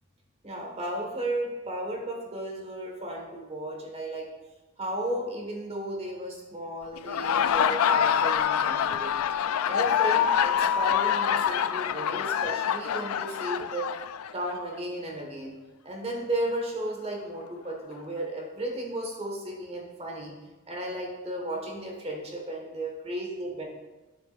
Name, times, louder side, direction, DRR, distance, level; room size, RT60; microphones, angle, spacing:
voice 1, 0.4-4.3 4.8-9.2 9.6-13.9 14.3-15.5 15.8-20.3 20.7-23.7, right 1 dB, 30° right, -1 dB, 1.7 m, -34 dB
Laughter, 7.0-14.6, left 8 dB, 80° left, 0.3 m, -25 dB
10.5 x 7.2 x 2.6 m, 1.1 s
head